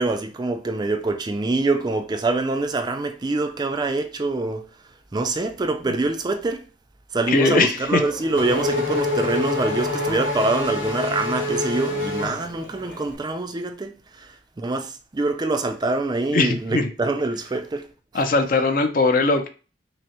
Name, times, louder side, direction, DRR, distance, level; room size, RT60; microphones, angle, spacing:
voice 1, 0.0-4.7 5.1-6.6 7.1-17.9 18.1-18.2, right 2 dB, 25° right, 0.3 m, -25 dB
voice 2, 7.3-8.0 16.3-16.9 18.1-19.5, left 3 dB, 50° left, 0.5 m, -20 dB
Race car auto racing / Accelerating revving vroom, 7.8-13.0, left 2 dB, 80° left, 0.9 m, -27 dB
5.9 x 2.0 x 2.9 m
head